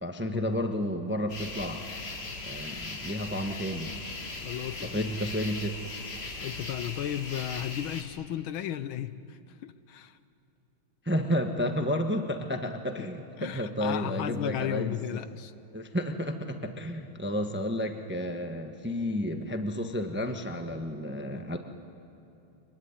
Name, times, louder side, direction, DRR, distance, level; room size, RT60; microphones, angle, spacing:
voice 1, 0.0-1.9 2.4-3.9 4.8-5.8 11.0-15.2 15.7-21.6, equal, 10° right, 5 dB, 0.8 m, -31 dB
sound 1, 1.3-8.0, left 3 dB, 30° left, 1.8 m, -39 dB
voice 2, 4.4-4.9 6.4-10.2 13.4-15.5, left 11 dB, 75° left, 13 dB, 1.5 m, -34 dB
24.0 x 22.5 x 9.7 m, 2.8 s
omnidirectional pair, 2.4 m